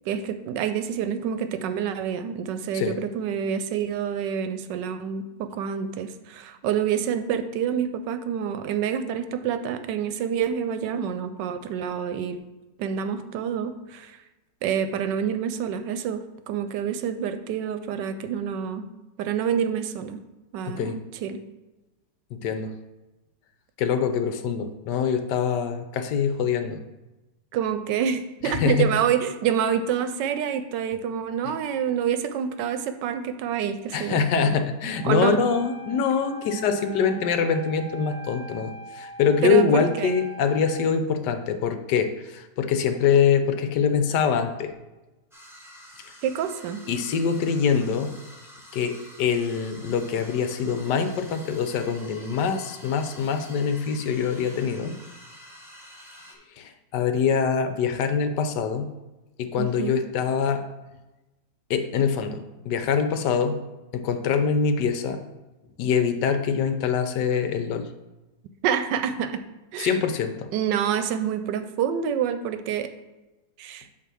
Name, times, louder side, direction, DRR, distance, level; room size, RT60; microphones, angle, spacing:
voice 1, 0.1-12.4 12.8-14.2 14.6-18.9 19.2-20.2 20.5-21.4 27.5-34.2 35.0-35.4 39.4-40.1 46.2-46.8 59.6-60.0 68.6-69.4 69.7-70.0 70.5-72.9 73.6-73.9, right 8 dB, 80° right, 10 dB, 1.2 m, -27 dB
voice 2, 20.7-21.0 22.3-22.7 23.8-26.8 28.4-28.9 33.9-44.7 46.9-48.1 48.7-55.0 56.6-58.9 59.4-60.6 61.7-63.6 63.9-65.2 65.8-67.9 69.8-70.5, left 6 dB, 75° left, 8 dB, 1.2 m, -24 dB
Wind instrument woodwind instrument, 35.0-40.9, right 1 dB, 55° right, 1.1 m, -42 dB
sound 1, 45.3-56.3, equal, ahead, 0.7 m, -48 dB
8.5 x 3.0 x 6.1 m, 1.1 s
omnidirectional pair, 1.9 m